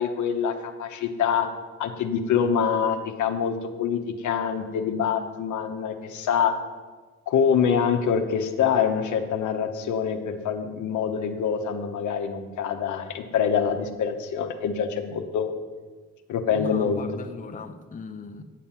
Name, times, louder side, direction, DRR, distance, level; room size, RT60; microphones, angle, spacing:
voice 1, 0.0-1.5 1.8-6.5 7.3-15.5 16.3-17.2, left 7 dB, 75° left, 6 dB, 1.0 m, -25 dB
voice 2, 16.5-18.4, left 5 dB, 25° left, 6 dB, 0.7 m, -37 dB
9.2 x 7.3 x 5.8 m, 1.4 s
cardioid pair, 90°, 30 cm